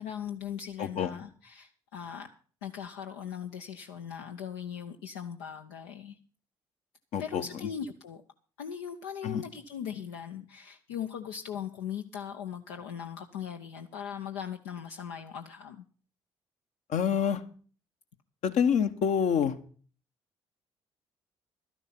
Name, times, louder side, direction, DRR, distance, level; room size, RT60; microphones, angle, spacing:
voice 1, 0.0-2.3 2.6-6.2 7.2-8.2 8.6-15.9, left 8 dB, 80° left, 0.7 m, -39 dB
voice 2, 0.8-1.2 7.1-7.4 9.2-9.4 16.9-17.4 18.4-19.6, left 7 dB, 60° left, 1.1 m, -27 dB
12.5 x 10.5 x 5.9 m
figure-of-eight pair, 45°, 14 cm